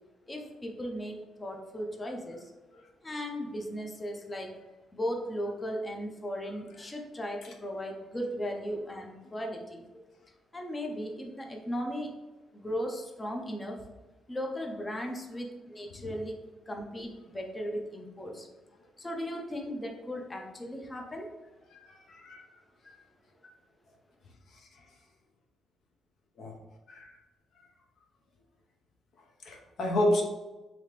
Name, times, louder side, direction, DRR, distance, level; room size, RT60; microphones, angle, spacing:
voice 1, 0.3-2.5 3.0-4.5 4.9-9.8 10.5-12.1 12.5-13.8 14.3-16.4 16.7-18.5 19.0-21.3, equal, 20° left, 2 dB, 0.6 m, -36 dB
voice 2, 21.7-22.4 26.4-26.5 26.9-27.2 29.4-30.2, left 1 dB, 65° left, 2 dB, 0.7 m, -30 dB
3.3 x 2.8 x 3.0 m, 1.1 s
cardioid pair, 90°, 0 cm